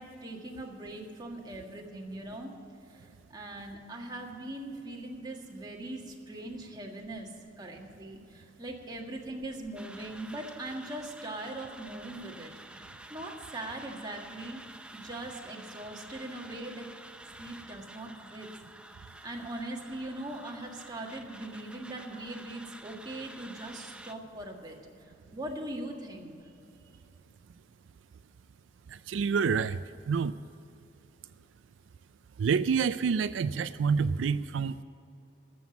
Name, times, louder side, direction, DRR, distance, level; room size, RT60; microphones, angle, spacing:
voice 1, 0.0-2.5 3.3-7.3 7.6-12.8 13.1-14.6 14.9-16.8 17.4-18.5 19.2-24.8 25.3-26.3, right 1 dB, 25° right, 0 dB, 1.8 m, -40 dB
sound 1, 9.7-24.1, right 1 dB, 5° right, 0.6 m, -50 dB
voice 2, 28.9-29.8 30.1-30.3 32.4-34.8, right 6 dB, 85° right, 13 dB, 0.4 m, -27 dB
13.0 x 7.7 x 9.6 m, 2.7 s
head